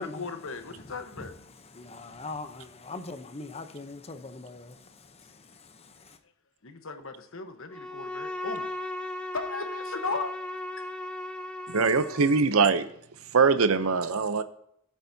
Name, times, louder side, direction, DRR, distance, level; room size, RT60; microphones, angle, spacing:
voice 1, 0.0-1.3 6.6-8.7 9.3-10.4, left 4 dB, 65° left, 1.1 m, -36 dB
voice 2, 0.7-1.3 1.6-6.2, left 3 dB, 30° left, 0.8 m, -42 dB
Bowed string instrument, 7.7-12.5, left 1 dB, 5° left, 1.1 m, -36 dB
voice 3, 11.7-12.8 13.3-14.4, right 4 dB, 80° right, 0.7 m, -22 dB
17.0 x 8.1 x 2.8 m
head